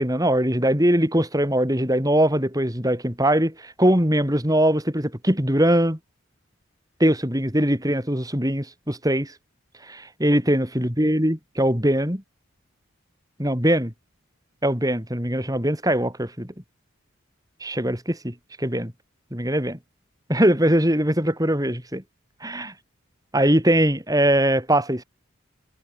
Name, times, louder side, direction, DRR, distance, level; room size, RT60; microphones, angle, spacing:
voice 1, 0.0-6.0 7.0-9.3 9.9-12.2 13.4-13.9 14.6-16.5 17.6-18.9 19.3-19.8 20.3-22.0 22.4-22.7 23.3-25.0, right 1 dB, 15° right, 6.2 m, -21 dB
head